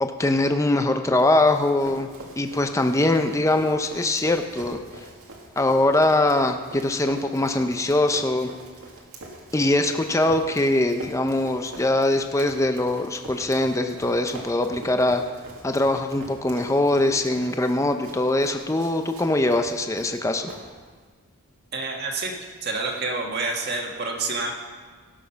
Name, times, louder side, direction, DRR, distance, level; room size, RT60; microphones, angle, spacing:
voice 1, 0.0-2.1 2.4-4.8 5.6-8.5 9.5-15.2 15.6-20.5, left 2 dB, 15° left, 6 dB, 0.5 m, -22 dB
Run, 1.2-21.0, right 2 dB, 75° right, 2.0 m, -44 dB
voice 2, 21.7-22.3 22.6-24.5, right 3 dB, 45° right, 1 dB, 1.6 m, -28 dB
17.0 x 6.3 x 5.7 m, 1.5 s
head